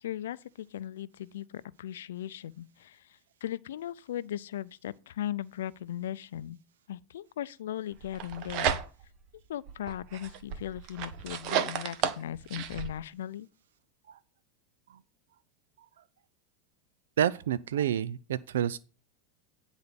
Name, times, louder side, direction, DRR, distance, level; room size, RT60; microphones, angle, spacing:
voice 1, 0.0-3.0 3.4-6.6 6.9-8.8 9.5-13.5, left 11 dB, 85° left, 0.4 m, -38 dB
sound 1, 8.0-9.2 9.7-12.9, right 9 dB, 50° right, 1.0 m, -33 dB
voice 2, 17.2-18.8, right 10 dB, 90° right, 0.4 m, -29 dB
9.6 x 4.0 x 6.9 m
supercardioid pair, 130°, 0 cm